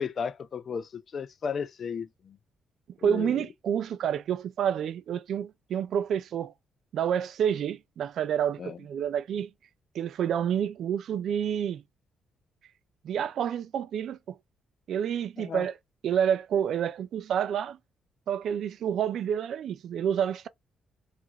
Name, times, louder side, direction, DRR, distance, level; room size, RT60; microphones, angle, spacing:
voice 1, 0.0-2.4 3.0-3.4 8.6-8.8 15.4-15.7, left 6 dB, 50° left, 0.4 m, -34 dB
voice 2, 3.0-6.5 6.9-9.5 9.9-11.8 13.0-14.4 14.9-15.7 16.0-17.8 18.3-20.5, right 8 dB, 70° right, 0.3 m, -29 dB
2.7 x 2.5 x 2.8 m
cardioid pair, 90°, 0 cm